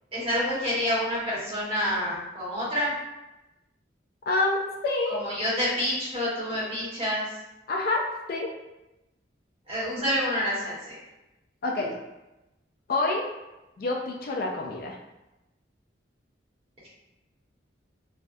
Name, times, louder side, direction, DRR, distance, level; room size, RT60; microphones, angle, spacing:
voice 1, 0.1-2.9 5.1-7.2 9.7-11.0, equal, 30° right, -10 dB, 1.3 m, -28 dB
voice 2, 4.3-4.6 4.8-5.2 7.7-8.0 8.3-8.5 11.6-11.9 12.9-13.2 13.8-14.9, left 2 dB, 50° left, 0 dB, 0.3 m, -27 dB
3.2 x 2.2 x 2.6 m, 0.99 s
head